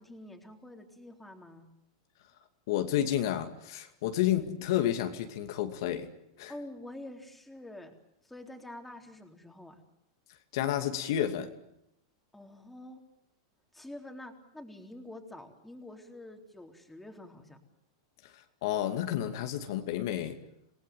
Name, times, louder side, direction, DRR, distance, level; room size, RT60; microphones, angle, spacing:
voice 1, 0.0-1.7 6.5-7.9 8.2-9.8 12.3-13.0 13.7-17.6, left 1 dB, 5° left, 3.9 m, -47 dB
voice 2, 2.7-6.1 6.4-6.5 10.5-11.5 18.6-20.4, left 11 dB, 65° left, 2.5 m, -30 dB
27.5 x 19.0 x 9.4 m
hypercardioid pair, 125°, 2 cm